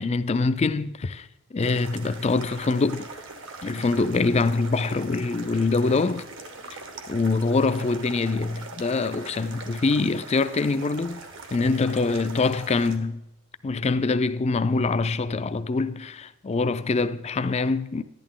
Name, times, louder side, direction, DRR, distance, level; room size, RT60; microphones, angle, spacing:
voice 1, 0.0-3.1 3.6-6.2 7.1-11.2 11.5-13.2 13.6-18.0, left 3 dB, 30° left, 0.4 m, -24 dB
sound 1, 1.6-13.0, right 3 dB, 60° right, 1.2 m, -41 dB
11.0 x 11.0 x 3.7 m
head